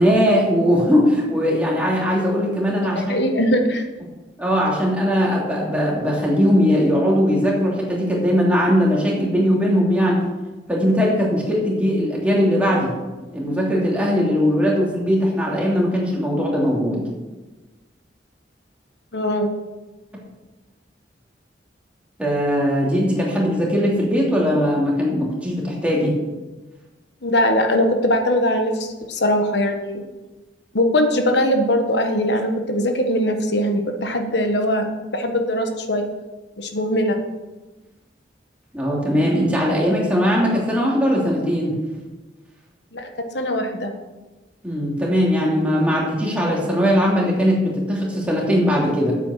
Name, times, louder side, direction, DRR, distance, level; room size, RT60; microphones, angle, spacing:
voice 1, 0.0-3.2 4.4-10.2 10.7-12.9 13.3-17.0 22.2-26.2 38.7-41.8 44.6-49.1, equal, 5° right, -4 dB, 2.9 m, -19 dB
voice 2, 2.9-3.8 19.1-19.5 27.2-30.0 30.7-34.9 35.1-36.1 36.6-37.2 42.9-43.1 43.3-43.9, equal, 65° left, 5 dB, 1.4 m, -21 dB
8.7 x 8.4 x 6.5 m, 1.2 s
head